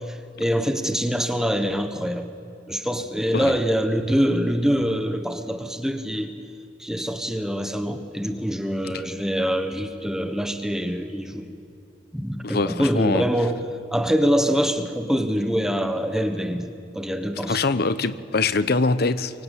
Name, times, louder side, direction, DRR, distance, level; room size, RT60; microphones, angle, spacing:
voice 1, 0.1-2.3 2.7-6.3 6.8-11.5 12.1-13.6 13.9-17.6, equal, 5° right, 7 dB, 1.3 m, -24 dB
voice 2, 12.4-13.2 17.5-19.4, left 3 dB, 60° left, 13 dB, 0.9 m, -23 dB
24.0 x 23.5 x 8.4 m, 2.5 s
head